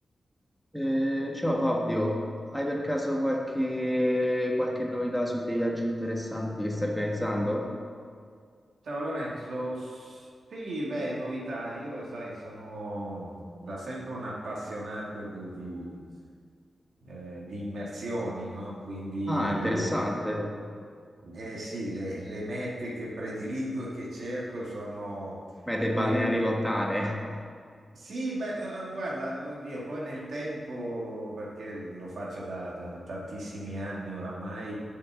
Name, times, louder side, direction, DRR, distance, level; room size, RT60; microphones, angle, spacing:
voice 1, 0.7-2.2 2.5-7.7 19.3-20.4 25.7-27.2, equal, 5° left, -1 dB, 1.6 m, -28 dB
voice 2, 8.8-16.0 17.0-20.0 20.3-20.5 21.2-25.4 25.9-26.5 27.9-34.7, right 1 dB, 75° right, -5 dB, 2.4 m, -35 dB
7.3 x 6.3 x 7.2 m, 2.1 s
cardioid pair, 55°, 0 cm